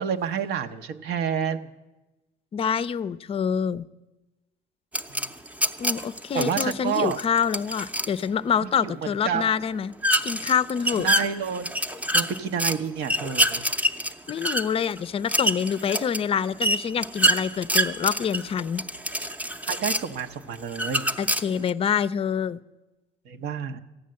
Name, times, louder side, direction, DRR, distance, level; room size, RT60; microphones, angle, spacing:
voice 1, 0.0-1.7 5.1-5.3 6.3-7.2 8.6-9.5 10.9-11.7 12.1-13.6 19.7-21.1 23.2-23.8, right 7 dB, 80° right, 7 dB, 0.9 m, -29 dB
voice 2, 2.5-3.8 5.8-9.9 10.2-11.1 14.3-18.8 21.2-22.6, left 7 dB, 35° left, 18 dB, 0.4 m, -26 dB
sound 1, 4.9-8.2 10.0-12.8 13.0-20.2 20.7-21.7, equal, 10° right, 0.6 m, -26 dB
14.5 x 9.4 x 7.6 m, 1.1 s
cardioid pair, 110°, 17 cm